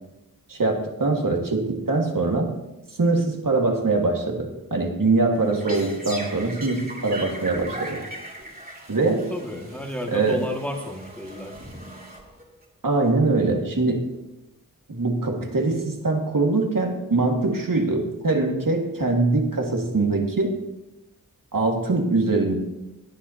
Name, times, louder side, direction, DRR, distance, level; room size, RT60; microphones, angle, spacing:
voice 1, 0.5-2.5 3.0-8.0 8.9-9.3 10.1-10.4 12.8-14.1 14.9-20.5 21.5-22.5, right 3 dB, 65° right, 2 dB, 1.9 m, -23 dB
sound 1, 5.3-12.6, right 1 dB, 25° right, 2.6 m, -39 dB
voice 2, 9.3-11.6, equal, 5° left, 1 dB, 1.9 m, -32 dB
17.5 x 9.7 x 2.8 m, 0.94 s
wide cardioid pair, 65°, 35 cm